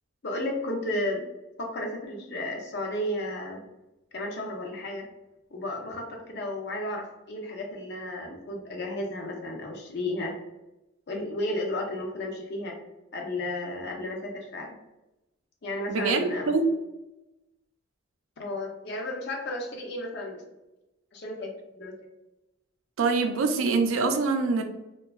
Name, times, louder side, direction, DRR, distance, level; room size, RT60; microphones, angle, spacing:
voice 1, 0.2-1.2 1.6-3.6 4.1-5.1 5.5-10.3 11.1-12.8 13.1-14.8 15.6-16.6 18.4-20.4 21.1-21.5 21.8-21.9, left 1 dB, 55° left, 1 dB, 0.5 m, -33 dB
voice 2, 15.9-16.7 23.0-24.6, right 4 dB, 85° right, 6 dB, 0.4 m, -24 dB
2.7 x 2.2 x 2.3 m, 0.97 s
head